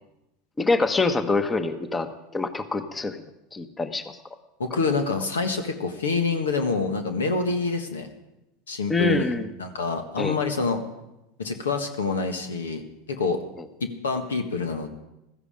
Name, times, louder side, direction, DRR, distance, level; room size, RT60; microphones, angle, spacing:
voice 1, 0.6-3.2 3.5-4.2 8.9-9.5 10.2-10.4, left 3 dB, 20° left, 10 dB, 1.2 m, -25 dB
voice 2, 4.6-8.1 8.7-9.3 9.6-10.8 11.4-12.8 13.1-13.4 13.8-14.9, left 4 dB, 85° left, 7 dB, 1.5 m, -26 dB
15.5 x 14.0 x 5.1 m, 0.93 s
hypercardioid pair, 85°, 0 cm